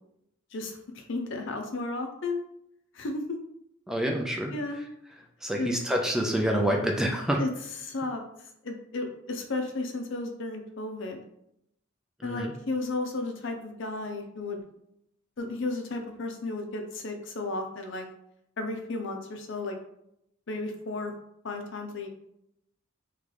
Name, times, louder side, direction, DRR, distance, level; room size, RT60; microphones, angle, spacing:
voice 1, 0.5-2.4 2.9-3.2 4.5-4.8 5.6-5.7 7.4-7.5 7.8-8.2 8.6-11.2 12.2-14.6 15.4-18.1 18.6-19.8 20.5-21.1 21.4-22.1, left 2 dB, 70° left, 4 dB, 0.7 m, -33 dB
voice 2, 3.9-4.5 5.4-7.4 12.2-12.5, equal, 5° right, 1 dB, 0.5 m, -27 dB
3.7 x 3.2 x 3.3 m, 0.77 s
head